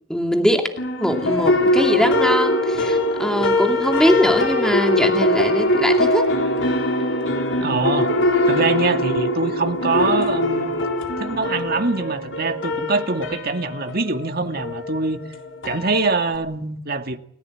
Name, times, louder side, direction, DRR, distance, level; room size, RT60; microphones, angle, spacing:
voice 1, 0.1-0.7 1.0-6.3, equal, 5° left, 2.4 m, -21 dB
sound 1, 0.8-16.4, left 1 dB, 75° left, 3.8 m, -22 dB
voice 2, 7.6-8.1 8.4-10.7 11.2-15.2 15.6-17.2, right 3 dB, 50° right, 2.1 m, -24 dB
30.0 x 16.0 x 8.8 m
head